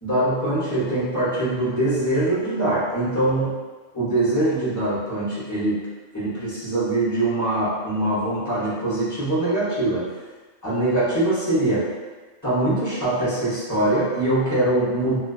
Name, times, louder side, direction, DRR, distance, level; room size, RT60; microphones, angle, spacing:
voice 1, 0.0-3.5 3.9-5.8 6.1-10.1 10.6-11.9 12.4-15.2, right 1 dB, 20° left, -11 dB, 0.7 m, -23 dB
2.4 x 2.3 x 2.2 m, 1.3 s
omnidirectional pair, 1.3 m